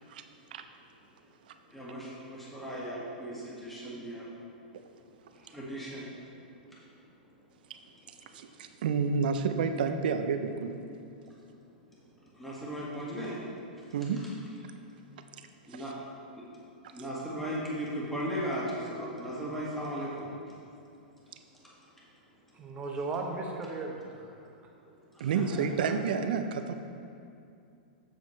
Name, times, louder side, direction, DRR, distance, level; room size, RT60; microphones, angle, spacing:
voice 1, 1.7-4.3 5.5-6.1 12.3-13.4 15.7-15.9 16.3-16.4 16.9-20.3 25.1-25.9, equal, 5° left, -7 dB, 1.8 m, -37 dB
voice 2, 8.3-10.8 13.9-14.3 15.7-15.8 25.2-26.7, right 5 dB, 65° right, 8 dB, 0.5 m, -30 dB
voice 3, 22.5-24.5, right 3 dB, 25° right, 1 dB, 1.0 m, -36 dB
7.5 x 7.0 x 3.2 m, 2.5 s
hypercardioid pair, 115°, 5 cm